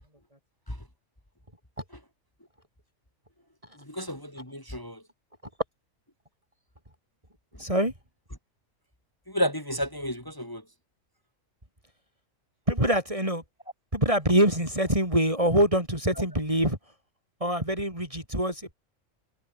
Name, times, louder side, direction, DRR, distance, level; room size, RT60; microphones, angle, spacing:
voice 1, 3.8-5.0 9.3-10.6, equal, 15° left, 4.1 m, -31 dB
voice 2, 7.6-7.9 12.7-13.4 13.9-16.8 17.4-18.7, equal, 25° right, 7.2 m, -24 dB
omnidirectional pair, 1.4 m